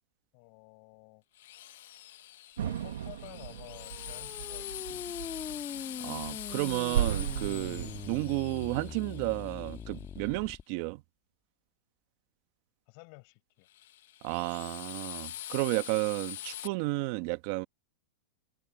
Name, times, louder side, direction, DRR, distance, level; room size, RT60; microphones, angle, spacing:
voice 1, 0.3-1.2 2.6-5.4 12.9-13.7, left 38 dB, 50° left, 7.0 m, -52 dB
Drill, 1.3-10.3 13.7-16.7, left 14 dB, 70° left, 0.8 m, -44 dB
sound 1, 2.6-8.9, right 10 dB, 90° right, 1.1 m, -36 dB
sound 2, 3.5-10.6, left 8 dB, 20° left, 1.5 m, -43 dB
voice 2, 6.0-11.0 14.2-17.7, right 23 dB, 50° right, 1.3 m, -32 dB
supercardioid pair, 145°, 0 cm